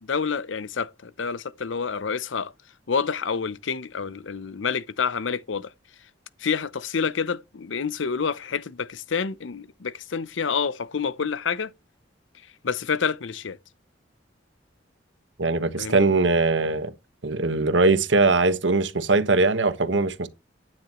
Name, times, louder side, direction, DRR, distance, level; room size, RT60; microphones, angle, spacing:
voice 1, 0.0-2.5 2.9-5.7 6.4-11.7 12.6-13.6 15.8-16.1, left 6 dB, 90° left, 0.7 m, -28 dB
voice 2, 15.4-16.9 17.2-20.3, right 3 dB, 75° right, 1.4 m, -21 dB
12.0 x 9.7 x 3.1 m
head